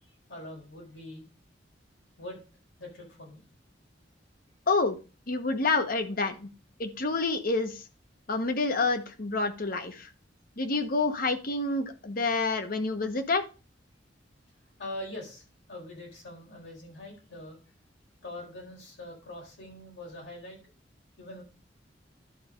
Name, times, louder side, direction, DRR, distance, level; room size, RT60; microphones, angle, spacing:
voice 1, 0.3-1.2 2.2-2.4 2.8-3.4 14.8-17.6 18.2-20.6 21.2-21.4, left 1 dB, 85° left, -1 dB, 4.5 m, -43 dB
voice 2, 5.3-6.5 6.8-7.8 8.3-10.1 10.6-13.4, left 3 dB, 50° left, 8 dB, 1.1 m, -28 dB
11.5 x 4.2 x 5.0 m, 0.33 s
head